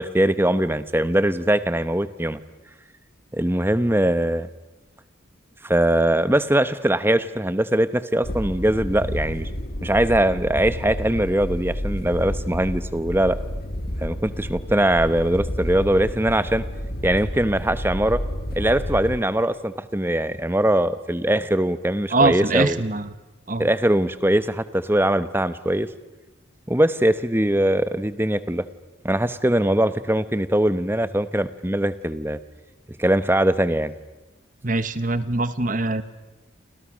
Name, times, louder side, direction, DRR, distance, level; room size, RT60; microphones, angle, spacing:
voice 1, 0.0-2.4 3.3-4.5 5.6-9.5 9.8-13.4 14.0-16.6 17.0-18.2 18.6-22.8 23.6-25.9 26.7-28.7 29.0-32.4 33.0-33.9, right 1 dB, 10° right, 13 dB, 0.9 m, -21 dB
sound 1, 8.2-19.2, equal, 50° left, 1.8 m, -30 dB
voice 2, 22.1-23.1 23.5-23.7 34.6-36.0, right 2 dB, 40° right, 13 dB, 1.3 m, -22 dB
30.0 x 26.0 x 6.3 m, 1.1 s
head